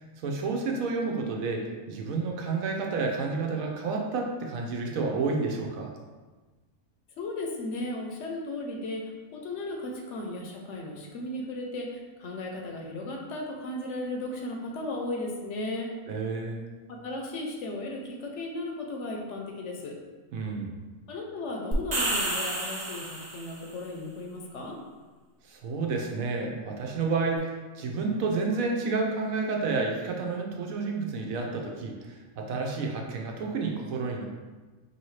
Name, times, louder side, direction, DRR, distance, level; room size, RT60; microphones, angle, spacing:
voice 1, 0.2-5.9 16.1-16.6 20.3-20.7 25.4-34.3, right 4 dB, 80° right, 1 dB, 1.1 m, -30 dB
voice 2, 7.2-15.9 16.9-20.0 21.1-24.8, left 2 dB, 65° left, 1 dB, 0.9 m, -35 dB
sound 1, 21.7-23.6, right 1 dB, 40° right, 0.7 m, -30 dB
4.7 x 2.8 x 3.1 m, 1.3 s
omnidirectional pair, 1.4 m